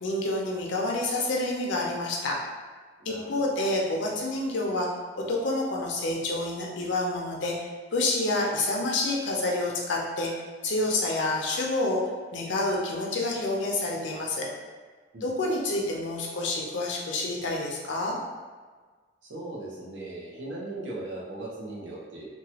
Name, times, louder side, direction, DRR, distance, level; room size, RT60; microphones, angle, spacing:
voice 1, 0.0-2.4 3.1-4.9 5.3-10.3 10.6-12.0 12.3-14.5 15.2-18.2, left 2 dB, 80° left, -1 dB, 0.6 m, -28 dB
voice 2, 3.0-3.6 15.1-15.3 19.2-22.3, right 2 dB, 90° right, -4 dB, 0.8 m, -38 dB
2.9 x 2.3 x 2.8 m, 1.5 s
head